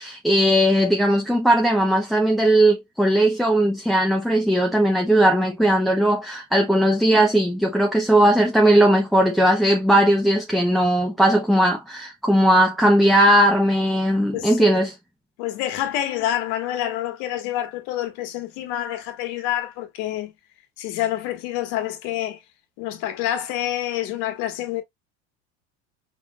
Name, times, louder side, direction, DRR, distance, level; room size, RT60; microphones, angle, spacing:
voice 1, 0.0-14.9, right 1 dB, ahead, 0.7 m, -18 dB
voice 2, 14.3-14.8 15.4-20.3 20.8-22.4 22.8-24.8, left 12 dB, 75° left, 1.6 m, -27 dB
5.3 x 4.2 x 2.3 m
supercardioid pair, 110°, 36 cm